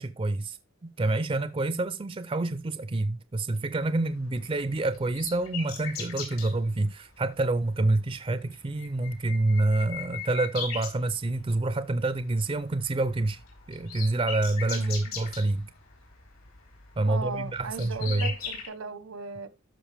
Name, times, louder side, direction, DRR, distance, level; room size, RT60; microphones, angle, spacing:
voice 1, 0.0-13.4 13.7-15.7 17.0-18.3, right 2 dB, 25° right, 0.5 m, -27 dB
sound 1, 3.9-6.6 7.5-7.7 8.1-8.2 8.5-11.6 12.0-12.3 12.6-18.7, left 6 dB, 80° left, 3.9 m, -39 dB
voice 2, 14.7-15.1 17.1-19.5, right 4 dB, 80° right, 1.1 m, -37 dB
12.5 x 5.4 x 3.4 m
head